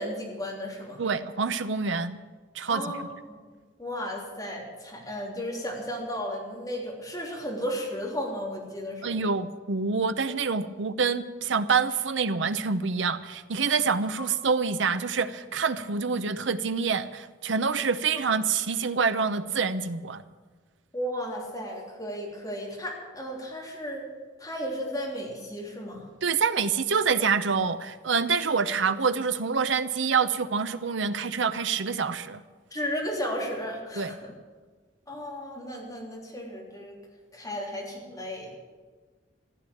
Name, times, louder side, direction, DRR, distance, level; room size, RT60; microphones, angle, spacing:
voice 1, 0.0-1.0 2.6-3.4 3.8-9.2 20.9-24.1 24.4-26.1 32.7-34.3 35.1-37.0 37.3-38.5, equal, 20° left, -2 dB, 3.5 m, -34 dB
voice 2, 1.0-2.2 2.5-2.8 9.0-20.2 26.2-32.4 34.0-34.1, right 5 dB, 75° right, 12 dB, 0.8 m, -26 dB
15.0 x 10.5 x 8.6 m, 1.4 s
head